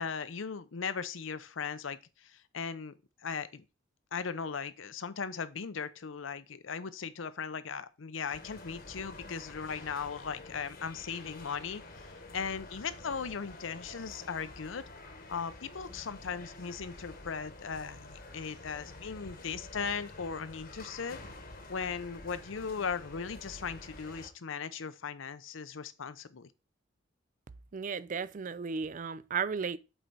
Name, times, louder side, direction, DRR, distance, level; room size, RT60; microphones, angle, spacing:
voice 1, 0.0-2.9 3.2-3.6 4.1-14.8 15.3-21.2 21.7-26.5, left 6 dB, 80° left, 0.6 m, -38 dB
sound 1, 8.3-24.3, left 2 dB, 50° left, 1.2 m, -49 dB
voice 2, 27.7-29.8, right 5 dB, 40° right, 0.4 m, -34 dB
7.9 x 4.5 x 4.0 m
head